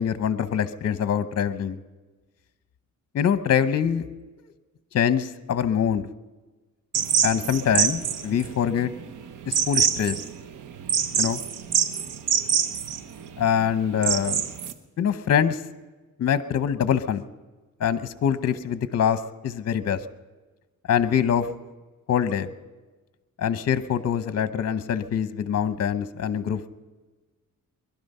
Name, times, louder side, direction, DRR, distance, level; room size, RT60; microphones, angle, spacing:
voice 1, 0.0-1.8 3.1-4.0 4.4-4.5 4.9-6.1 7.2-8.9 9.4-10.2 11.1-11.4 13.4-14.4 15.0-15.6 16.2-17.2 17.8-20.0 20.9-21.5 22.1-22.5 23.4-26.7, left 8 dB, 50° left, 12 dB, 0.9 m, -24 dB
sound 1, 6.9-14.7, right 8 dB, 80° right, 1.1 m, -25 dB
21.5 x 12.0 x 5.5 m, 1.3 s
cardioid pair, 110°, 31 cm